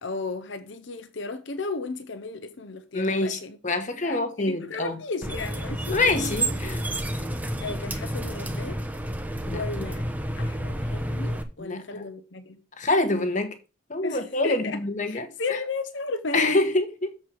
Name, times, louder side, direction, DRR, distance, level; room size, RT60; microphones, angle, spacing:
voice 1, 0.0-3.6 4.0-6.0 6.9-7.0 7.6-8.8 9.5-10.1 10.4-12.6 14.0-16.6, left 3 dB, 60° left, 0.8 m, -34 dB
voice 2, 2.9-5.0 5.9-6.8 9.5-9.6 11.6-12.1 12.8-13.6 13.9-15.6 16.3-17.1, left 2 dB, 40° left, 1.2 m, -26 dB
sound 1, 5.2-11.4, right 1 dB, 10° right, 0.7 m, -30 dB
7.3 x 4.5 x 6.1 m
head